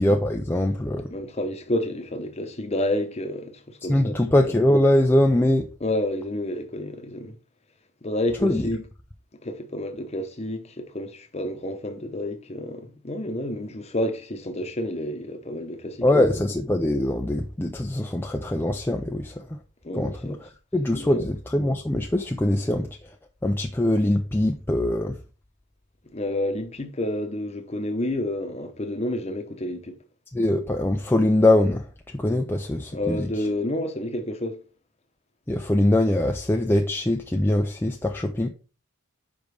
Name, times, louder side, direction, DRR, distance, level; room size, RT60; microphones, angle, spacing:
voice 1, 0.0-1.1 3.9-5.7 8.4-8.7 16.0-19.6 19.9-22.9 23.4-25.2 30.3-33.3 35.5-38.5, left 1 dB, 10° left, 0.4 m, -22 dB
voice 2, 1.1-4.2 5.8-7.3 8.0-8.8 9.4-16.1 19.8-20.4 20.9-21.2 26.1-30.0 32.9-34.6, left 1 dB, 30° left, 0.9 m, -29 dB
5.2 x 5.1 x 4.8 m
head